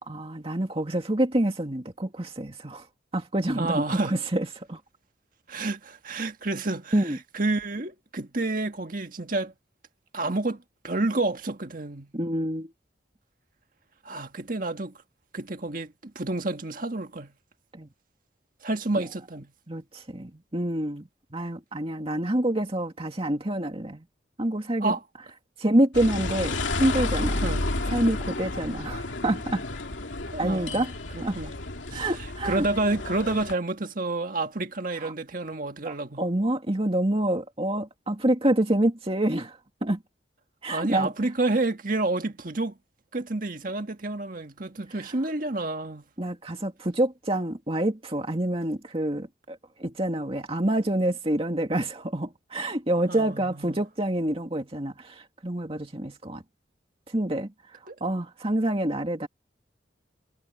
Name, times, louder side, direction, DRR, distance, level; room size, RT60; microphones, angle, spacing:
voice 1, 0.0-2.9 3.1-4.8 6.9-7.2 12.1-12.7 17.7-17.9 19.7-24.0 24.4-25.0 25.6-27.4 27.9-29.6 30.4-30.9 31.2-31.4 31.9-32.7 34.9-35.1 35.8-40.0 40.6-41.1 45.0-45.1 46.2-56.4 57.1-59.3, right 1 dB, 30° right, 2.1 m, -27 dB
voice 2, 3.6-4.2 5.5-9.5 10.1-12.1 14.0-14.9 15.3-17.3 18.6-19.5 24.8-25.0 27.4-27.7 30.3-30.9 31.1-31.5 31.9-32.1 32.4-36.2 40.7-42.8 43.1-46.0 53.1-53.7 57.9-58.0, right 2 dB, 50° right, 1.7 m, -29 dB
sound 1, 25.9-33.5, left 2 dB, 85° left, 2.5 m, -31 dB
head